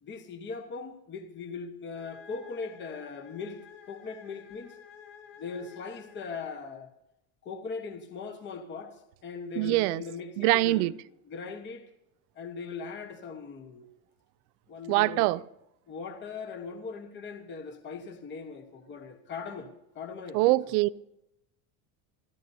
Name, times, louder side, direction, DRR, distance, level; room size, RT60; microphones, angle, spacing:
voice 1, 0.0-4.8 5.4-6.9 7.4-10.9 11.3-11.9 12.3-13.9 14.7-15.4 15.9-20.8, left 5 dB, 25° left, 1.2 m, -40 dB
sound 1, 2.0-6.8, left 8 dB, 85° left, 3.5 m, -52 dB
voice 2, 9.6-10.0 10.4-10.9 14.9-15.4 20.3-21.0, right 20 dB, 80° right, 0.6 m, -24 dB
29.0 x 13.5 x 2.7 m
cardioid pair, 165°, 44 cm